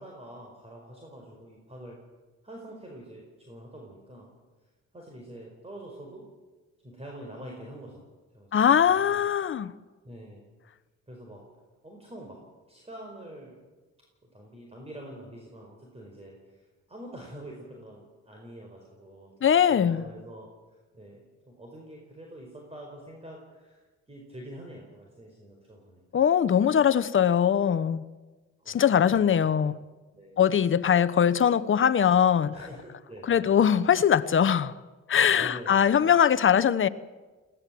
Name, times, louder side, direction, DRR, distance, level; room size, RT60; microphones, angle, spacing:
voice 1, 0.0-2.0 2.4-4.3 4.9-6.2 6.8-8.1 8.3-9.3 10.0-10.4 11.1-11.4 11.8-12.4 12.7-13.6 14.2-26.0 28.6-29.8 30.1-30.4 32.5-33.9 35.4-36.1, right 1 dB, 20° right, 4.9 m, -46 dB
voice 2, 8.5-9.7 19.4-20.0 26.1-28.0 28.7-29.8 30.4-32.6 33.3-34.8 35.1-36.9, left 8 dB, 40° left, 0.9 m, -21 dB
21.0 x 17.0 x 7.7 m
cardioid pair, 90°, 30 cm